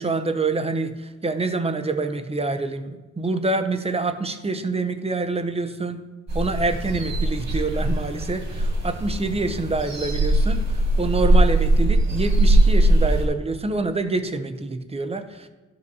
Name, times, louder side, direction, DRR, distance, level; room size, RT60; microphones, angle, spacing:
voice 1, 0.0-6.0 6.3-15.5, right 3 dB, 20° right, 8 dB, 0.5 m, -26 dB
sound 1, 6.3-13.3, right 1 dB, 65° right, 2.1 m, -20 dB
12.5 x 5.3 x 2.7 m, 1.2 s
wide cardioid pair, 165°, 30 cm